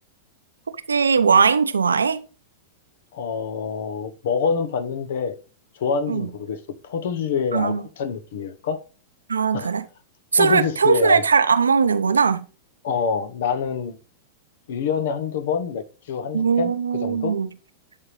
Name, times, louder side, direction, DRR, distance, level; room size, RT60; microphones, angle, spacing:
voice 1, 0.9-2.2 6.1-6.3 7.5-7.8 9.3-9.8 10.3-12.4 16.3-17.5, right 5 dB, 85° right, 0.6 m, -19 dB
voice 2, 3.1-5.4 5.7-8.8 9.5-9.7 10.3-11.2 12.8-14.0 14.7-17.3, left 6 dB, 65° left, 0.9 m, -26 dB
11.0 x 3.7 x 3.1 m
hypercardioid pair, 100°, 0 cm